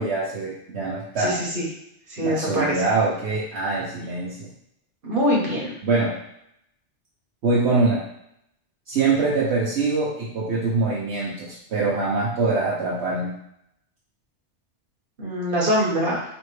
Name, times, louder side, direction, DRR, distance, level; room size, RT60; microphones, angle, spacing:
voice 1, 0.0-1.3 2.2-4.5 5.8-6.1 7.4-8.0 8.9-13.3, right 3 dB, 65° right, -6 dB, 1.0 m, -24 dB
voice 2, 1.2-1.6 2.1-2.8 5.0-5.7 15.2-16.2, equal, 45° right, -3 dB, 1.3 m, -23 dB
4.3 x 3.1 x 3.2 m, 0.75 s
omnidirectional pair, 1.2 m